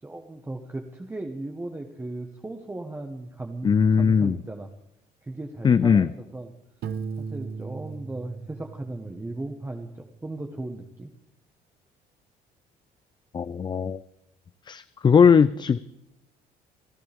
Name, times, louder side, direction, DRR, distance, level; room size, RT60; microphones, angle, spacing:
voice 1, 0.0-4.7 5.2-6.5 7.2-11.1, right 2 dB, 15° right, 2 dB, 1.4 m, -36 dB
voice 2, 3.6-4.4 5.6-6.1 13.3-14.0 14.7-15.8, left 6 dB, 25° left, 14 dB, 0.4 m, -19 dB
Piano, 6.8-9.6, right 5 dB, 65° right, 1.0 m, -37 dB
29.5 x 11.0 x 3.5 m, 0.89 s
cardioid pair, 110°, 17 cm